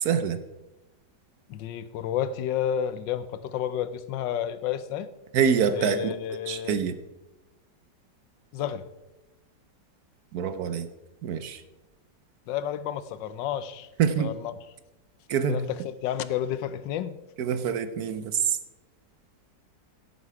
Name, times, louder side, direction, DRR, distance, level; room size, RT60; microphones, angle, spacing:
voice 1, 0.0-0.4 5.3-6.1 6.5-6.9 10.3-10.9 11.2-11.6 14.0-14.3 15.3-15.7 17.4-18.6, right 7 dB, 65° right, 12 dB, 1.1 m, -25 dB
voice 2, 1.5-5.1 5.7-6.8 8.5-8.9 12.5-13.9 14.2-14.5 15.5-17.2, left 10 dB, 85° left, 14 dB, 1.4 m, -31 dB
17.0 x 8.3 x 4.7 m, 1.0 s
omnidirectional pair, 1.9 m